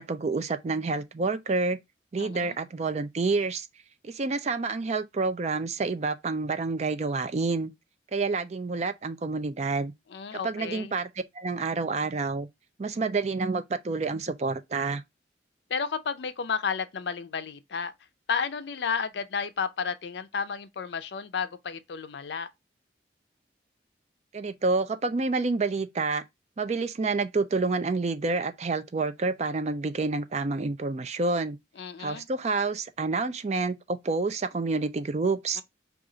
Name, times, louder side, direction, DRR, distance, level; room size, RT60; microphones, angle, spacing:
voice 1, 0.0-1.8 2.1-3.7 4.0-7.7 8.1-9.9 10.3-11.1 11.3-12.5 12.8-15.0 24.3-26.2 26.6-31.6 32.0-35.6, right 3 dB, 35° right, 0.4 m, -28 dB
voice 2, 2.2-2.6 10.1-10.9 15.7-17.9 18.3-22.5 31.8-32.2 35.6-35.7, left 6 dB, 65° left, 0.5 m, -32 dB
4.9 x 2.4 x 3.7 m
head